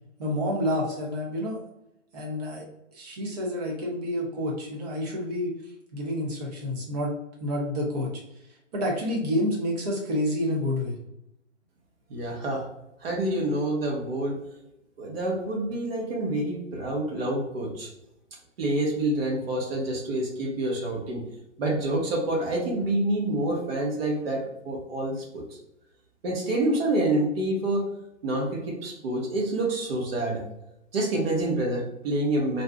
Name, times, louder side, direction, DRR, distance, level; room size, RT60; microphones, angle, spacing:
voice 1, 0.2-1.6 2.1-2.7 2.9-5.5 5.9-7.1 7.4-8.1 8.7-11.0, left 1 dB, 35° right, -2 dB, 0.8 m, -28 dB
voice 2, 12.1-12.7 13.0-14.4 15.0-17.9 18.6-21.2 21.6-25.4 26.2-27.8 28.2-30.4 30.9-32.6, right 1 dB, 50° right, -1 dB, 1.1 m, -27 dB
2.6 x 2.4 x 3.4 m, 0.84 s
hypercardioid pair, 160°, 37 cm